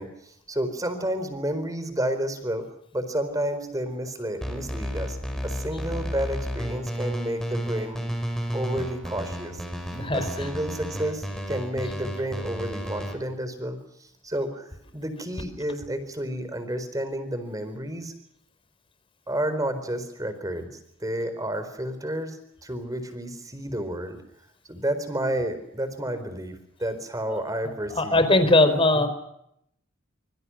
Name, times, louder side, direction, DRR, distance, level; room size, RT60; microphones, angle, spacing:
voice 1, 0.0-2.7 2.9-5.2 5.4-8.0 8.5-9.6 10.1-18.1 19.3-20.7 21.0-24.2 24.7-28.3 28.9-29.1, right 1 dB, 15° right, 10 dB, 4.3 m, -31 dB
sound 1, 4.4-13.1, equal, 5° left, 5.2 m, -32 dB
voice 2, 9.9-10.2 28.0-29.1, left 2 dB, 25° left, 10 dB, 4.2 m, -19 dB
26.0 x 25.0 x 6.3 m, 0.76 s
head